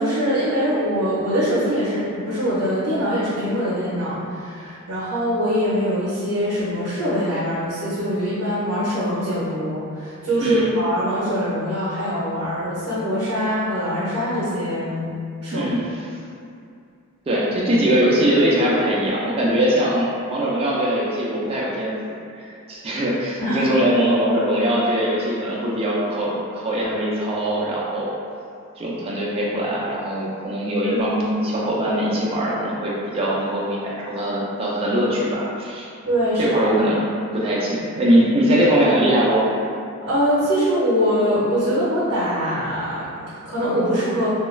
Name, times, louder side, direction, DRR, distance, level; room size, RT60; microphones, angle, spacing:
voice 1, 0.0-15.1 15.4-15.7 23.4-23.7 30.8-31.1 36.0-36.6 40.0-44.3, equal, 70° right, -9 dB, 0.6 m, -23 dB
voice 2, 15.5-16.1 17.3-28.1 28.8-35.9 36.4-37.0 37.3-39.5, right 1 dB, 25° right, -6 dB, 0.4 m, -21 dB
2.3 x 2.2 x 3.1 m, 2.4 s
head